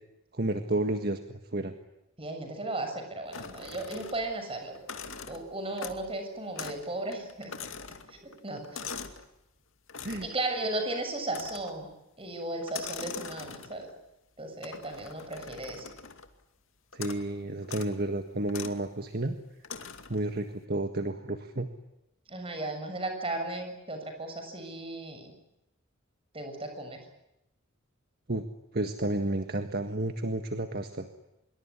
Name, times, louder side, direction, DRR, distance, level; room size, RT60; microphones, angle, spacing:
voice 1, 0.3-1.7 10.0-10.3 16.9-19.3 20.1-21.7 28.3-28.4 28.7-31.1, right 1 dB, 50° right, 7 dB, 1.6 m, -31 dB
voice 2, 2.2-4.8 5.3-7.5 8.1-8.9 10.2-11.9 12.2-13.9 14.4-15.9 22.3-25.3 26.3-27.0, right 2 dB, 25° right, 6 dB, 7.0 m, -35 dB
sound 1, 3.3-4.4 4.7-6.2 6.6-6.9 7.1-9.3 9.9-10.4 11.3-11.8 12.6-13.9 14.6-16.3 16.9-17.3 17.6-17.9 18.5-18.8 19.6-20.2, left 6 dB, 70° left, 2.4 m, -42 dB
26.0 x 23.0 x 9.9 m, 0.89 s
head